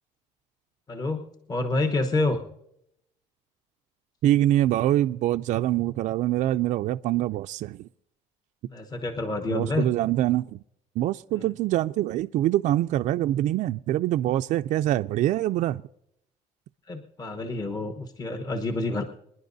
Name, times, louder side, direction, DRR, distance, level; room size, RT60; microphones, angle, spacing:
voice 1, 0.9-1.2 1.5-2.4 8.7-9.9 11.4-11.5 16.9-19.1, left 2 dB, 30° left, 1.1 m, -28 dB
voice 2, 4.2-7.9 9.5-10.6 11.0-15.8, right 13 dB, 60° right, 0.4 m, -24 dB
25.5 x 11.0 x 2.7 m
cardioid pair, 125°, 14 cm